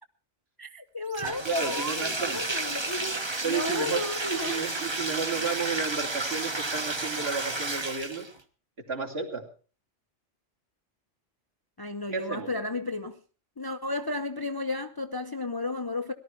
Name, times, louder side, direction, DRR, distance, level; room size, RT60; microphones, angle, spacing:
voice 1, 0.6-3.2 3.4-4.6 11.8-13.2 13.6-16.1, left 2 dB, 25° left, 0.7 m, -33 dB
Bathtub (filling or washing), 1.1-8.4, right 2 dB, 25° right, 1.2 m, -32 dB
voice 2, 1.4-2.4 3.4-4.0 4.3-8.3 8.9-9.4 12.1-12.5, right 5 dB, 55° right, 3.0 m, -32 dB
18.0 x 12.5 x 4.5 m
omnidirectional pair, 1.2 m